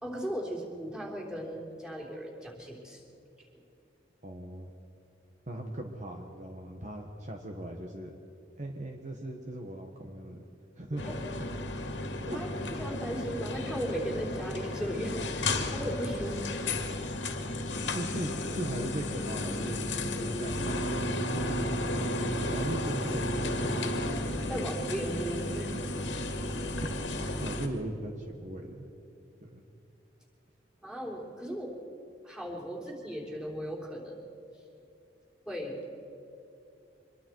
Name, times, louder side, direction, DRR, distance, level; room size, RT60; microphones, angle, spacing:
voice 1, 0.0-3.0 11.0-11.1 12.2-12.5 12.7-16.6 24.5-25.8 30.8-31.8 32.2-34.2 35.5-35.7, equal, 5° right, -3 dB, 3.8 m, -37 dB
voice 2, 4.2-4.7 5.5-8.1 8.6-10.4 10.8-11.3 12.3-12.4 17.9-23.8 24.5-24.6 26.8-26.9 27.4-28.9 29.4-29.6, right 1 dB, 40° right, 2 dB, 1.4 m, -39 dB
sound 1, 11.0-27.7, left 1 dB, 80° left, 2.1 m, -33 dB
25.0 x 22.0 x 4.7 m, 2.8 s
head